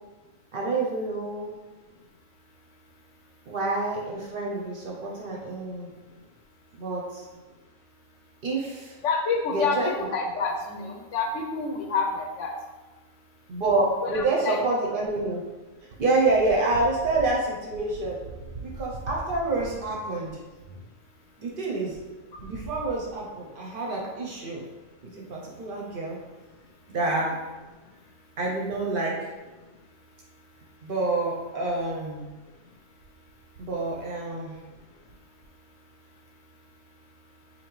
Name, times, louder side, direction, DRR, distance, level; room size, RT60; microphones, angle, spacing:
voice 1, 0.5-1.6 3.5-5.9 6.8-7.3 8.4-9.0 9.5-9.9 13.5-15.4 16.0-20.4 21.4-22.0 22.4-24.6 25.0-26.2 26.9-27.5 28.4-29.3 30.8-32.2 33.6-34.6, right 2 dB, 55° right, -2 dB, 0.6 m, -27 dB
voice 2, 9.0-12.5 14.0-14.6, left 4 dB, 65° left, 2 dB, 0.8 m, -28 dB
4.1 x 2.8 x 3.0 m, 1.2 s
omnidirectional pair, 1.5 m